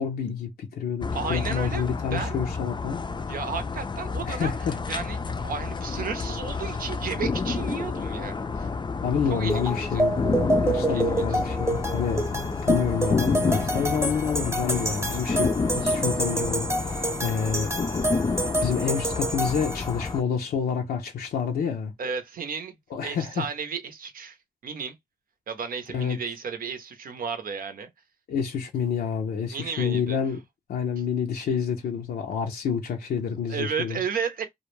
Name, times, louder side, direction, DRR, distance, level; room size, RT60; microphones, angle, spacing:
voice 1, 0.0-3.0 4.3-4.8 9.0-17.7 18.6-21.9 22.9-23.5 25.9-26.2 28.3-30.4 30.7-34.0, left 7 dB, 80° left, 0.5 m, -28 dB
sound 1, 1.0-20.2, left 4 dB, 30° left, 0.4 m, -29 dB
voice 2, 1.1-2.4 3.2-4.5 4.9-8.7 9.3-10.0 10.7-11.4 22.0-22.8 23.0-24.4 24.6-25.0 25.5-27.9 29.5-30.2 33.5-34.4, right 6 dB, 70° right, 0.6 m, -33 dB
sound 2, 9.5-20.1, right 1 dB, 20° right, 0.8 m, -28 dB
2.2 x 2.1 x 3.1 m
cardioid pair, 50°, 15 cm